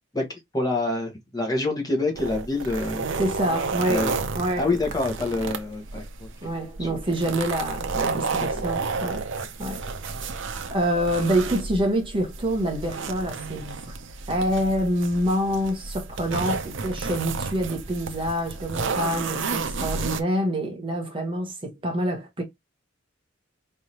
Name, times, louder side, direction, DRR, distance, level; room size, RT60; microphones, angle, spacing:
voice 1, 0.1-3.1 3.9-4.2 4.6-6.3 6.8-7.0 8.2-8.3 9.4-9.5, left 2 dB, 20° left, 1.4 m, -27 dB
sound 1, 2.2-20.2, right 4 dB, 65° right, 0.6 m, -31 dB
voice 2, 3.2-4.1 4.4-4.7 6.4-9.3 9.6-10.1 10.7-13.9 14.3-22.4, equal, 25° right, 1.2 m, -26 dB
4.5 x 3.4 x 2.9 m
head